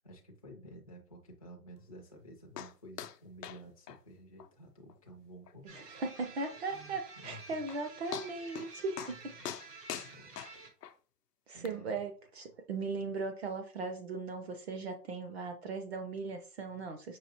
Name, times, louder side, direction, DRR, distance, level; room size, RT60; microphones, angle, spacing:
voice 1, 0.0-6.0 6.7-7.6 9.1-9.5 10.0-10.3 11.5-12.0, right 1 dB, 25° left, -1 dB, 0.3 m, -52 dB
sound 1, 2.6-2.7 3.0-3.2 3.4-3.6 3.9-4.0 4.4-4.5 4.9-5.0 5.5-5.6 7.2-7.3 7.7-7.8 8.1-8.7 9.0-9.2 9.4-10.9 11.6-11.7, left 10 dB, 80° left, 0.6 m, -42 dB
voice 2, 5.7-9.3 11.5-17.2, right 3 dB, 45° right, 7 dB, 0.6 m, -38 dB
sound 2, 5.7-10.7, right 4 dB, 85° right, 1.4 m, -51 dB
5.6 x 2.7 x 2.9 m, 0.40 s
hypercardioid pair, 150°, 47 cm